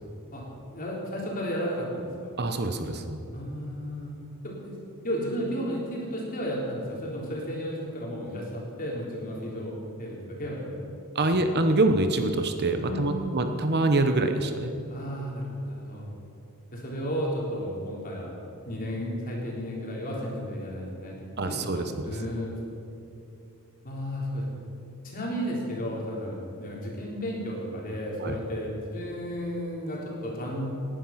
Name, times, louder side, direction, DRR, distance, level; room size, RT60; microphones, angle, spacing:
voice 1, 0.7-2.1 3.3-4.1 4.4-4.8 5.0-9.7 10.0-10.8 12.8-13.3 14.9-16.0 16.7-18.3 18.6-21.1 21.4-22.5 23.8-24.5 25.0-30.7, equal, 40° left, -3 dB, 3.5 m, -33 dB
voice 2, 2.4-3.2 11.1-14.7 21.4-22.0 28.2-28.4, right 2 dB, 45° right, 7 dB, 0.9 m, -25 dB
18.5 x 10.5 x 5.8 m, 2.7 s
head